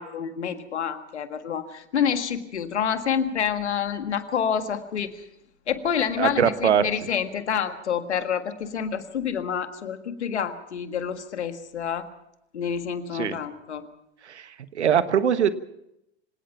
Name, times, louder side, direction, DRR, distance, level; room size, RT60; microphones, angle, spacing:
voice 1, 0.0-5.2 5.7-12.1 12.5-13.9, left 7 dB, 75° left, 9 dB, 1.8 m, -28 dB
voice 2, 6.2-6.9 13.1-13.4 14.2-15.5, right 8 dB, 80° right, 13 dB, 1.4 m, -22 dB
26.0 x 18.0 x 5.8 m, 0.82 s
figure-of-eight pair, 85°, 34 cm